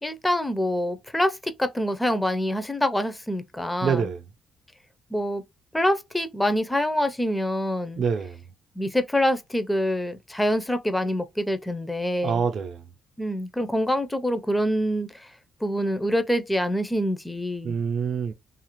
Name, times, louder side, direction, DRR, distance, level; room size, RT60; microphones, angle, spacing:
voice 1, 0.0-4.1 5.1-5.4 5.7-8.0 8.8-12.4 13.2-15.3 15.6-17.8, equal, 10° left, 0.5 m, -25 dB
voice 2, 3.8-4.2 8.0-8.4 12.2-12.8 17.6-18.3, right 6 dB, 65° right, 0.5 m, -26 dB
2.8 x 2.4 x 3.0 m
cardioid pair, 90°, 0 cm